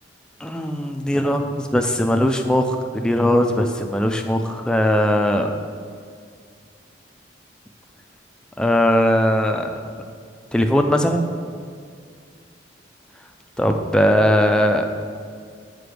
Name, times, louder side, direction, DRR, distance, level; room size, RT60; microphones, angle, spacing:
voice 1, 0.4-5.5 8.6-9.8 10.5-11.3 13.6-14.9, equal, 5° left, 4 dB, 0.3 m, -19 dB
5.0 x 5.0 x 6.1 m, 2.2 s
head